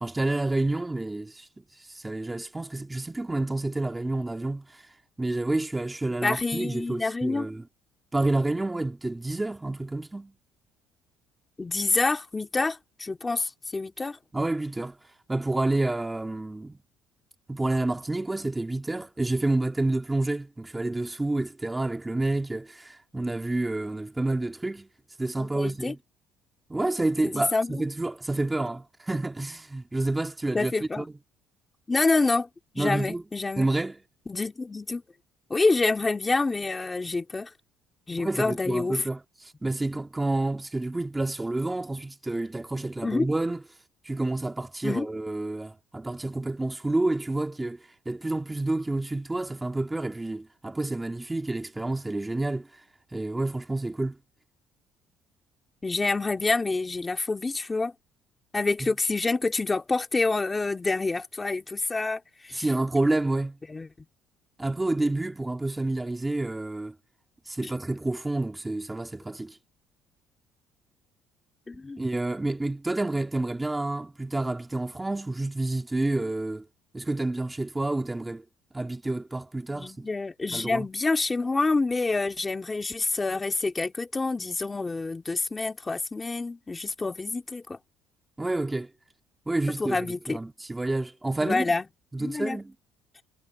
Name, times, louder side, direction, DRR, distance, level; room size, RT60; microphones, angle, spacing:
voice 1, 0.0-4.9 5.2-7.6 8.1-10.3 14.3-15.0 15.3-16.8 17.5-24.9 25.2-26.0 26.7-31.1 32.8-33.2 33.6-34.0 38.2-43.6 44.0-47.8 48.1-52.7 53.1-54.2 58.8-58.9 62.5-63.6 64.6-66.9 67.5-69.6 72.0-76.6 76.9-78.4 78.7-80.1 80.5-80.9 88.4-88.9 89.5-91.7 92.1-92.7, right 2 dB, 10° right, 2.2 m, -29 dB
voice 2, 6.2-7.5 11.6-14.2 25.4-25.9 27.2-27.8 30.5-31.1 31.9-32.5 32.7-33.7 34.3-35.0 35.5-37.5 38.1-39.0 43.0-43.3 44.8-45.1 55.8-57.9 58.5-62.6 63.7-64.1 71.7-72.0 79.8-87.8 89.8-90.4 91.4-91.8 92.2-92.6, left 3 dB, 15° left, 2.3 m, -27 dB
cardioid pair, 130°, 0 cm